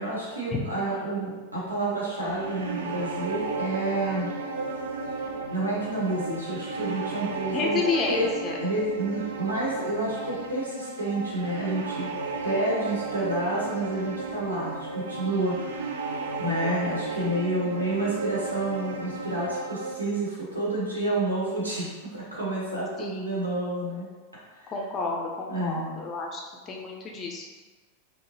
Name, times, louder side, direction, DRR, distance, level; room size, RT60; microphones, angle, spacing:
voice 1, 0.0-4.3 5.5-7.8 8.1-8.3 8.6-12.1 12.4-15.6 16.4-24.1 24.5-24.7 25.5-25.9, right 2 dB, 80° right, -6 dB, 1.0 m, -29 dB
sound 1, 2.3-20.0, right 3 dB, 60° right, 0.3 m, -34 dB
voice 2, 7.5-8.6 17.2-17.4 23.0-23.5 24.7-26.4 26.7-27.6, left 4 dB, 30° left, 0 dB, 0.5 m, -31 dB
3.6 x 2.1 x 2.9 m, 1.4 s
figure-of-eight pair, 90°, 0 cm